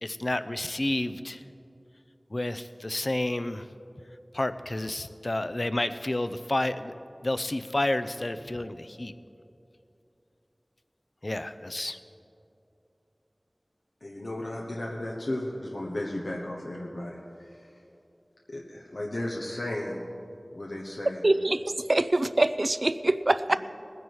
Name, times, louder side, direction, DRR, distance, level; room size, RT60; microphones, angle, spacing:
voice 1, 0.0-1.4 2.3-3.7 4.3-6.9 7.2-9.1 11.2-12.0, left 1 dB, 50° left, 12 dB, 0.6 m, -30 dB
voice 2, 14.0-17.7 18.5-20.0 20.5-21.2 23.5-23.6, left 1 dB, 90° left, -2 dB, 1.2 m, -35 dB
voice 3, 21.2-23.6, right 2 dB, 55° right, 12 dB, 0.4 m, -24 dB
19.0 x 9.9 x 4.8 m, 2.7 s
wide cardioid pair, 40°, 0 cm